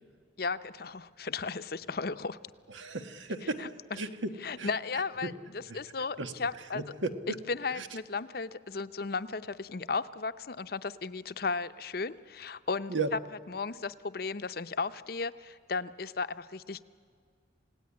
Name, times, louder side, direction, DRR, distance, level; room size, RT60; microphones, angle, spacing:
voice 1, 0.4-2.4 3.6-3.7 4.4-6.8 7.5-12.9 13.5-16.8, left 4 dB, 55° left, 13 dB, 0.7 m, -35 dB
voice 2, 2.7-3.7 3.9-4.7 5.2-5.3 5.7-5.8 6.2-6.3 6.7-7.4 7.7-7.9 12.9-13.1, right 3 dB, 90° right, 8 dB, 1.5 m, -35 dB
28.0 x 17.5 x 9.7 m, 2.1 s
head